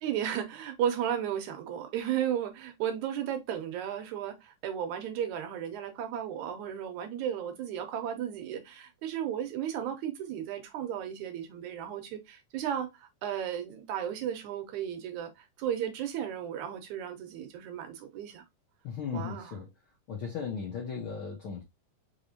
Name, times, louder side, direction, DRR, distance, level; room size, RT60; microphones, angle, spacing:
voice 1, 0.0-18.4 19.1-19.5, right 9 dB, 75° right, 2.0 m, -34 dB
voice 2, 18.8-19.7 20.1-21.6, left 6 dB, 70° left, 1.2 m, -36 dB
4.9 x 3.4 x 2.7 m
omnidirectional pair, 3.7 m